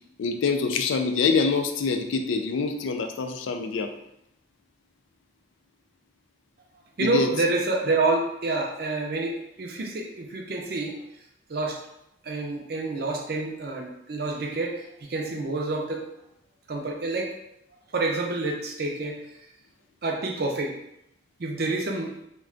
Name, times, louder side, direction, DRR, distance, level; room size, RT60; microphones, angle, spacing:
voice 1, 0.2-3.9 7.0-7.3, left 4 dB, 90° left, 5 dB, 0.4 m, -25 dB
voice 2, 7.0-11.0 11.5-11.8 12.2-16.0 16.7-17.3 17.9-19.2 20.0-20.7 21.4-22.1, right 3 dB, 55° right, 1 dB, 0.5 m, -28 dB
2.3 x 2.2 x 3.7 m, 0.79 s
head